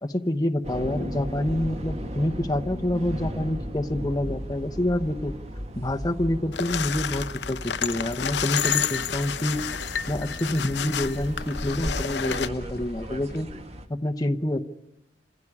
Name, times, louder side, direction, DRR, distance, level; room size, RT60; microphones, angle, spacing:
voice 1, 0.0-5.3 5.8-9.6 10.1-13.5 13.9-14.6, left 1 dB, 20° left, 4 dB, 0.9 m, -27 dB
sound 1, 0.6-13.9, equal, 40° right, 2.2 m, -36 dB
sound 2, 6.5-12.5, left 8 dB, 80° left, 0.8 m, -30 dB
sound 3, 9.5-13.4, left 2 dB, 60° left, 1.2 m, -45 dB
27.5 x 16.0 x 9.7 m, 0.88 s
head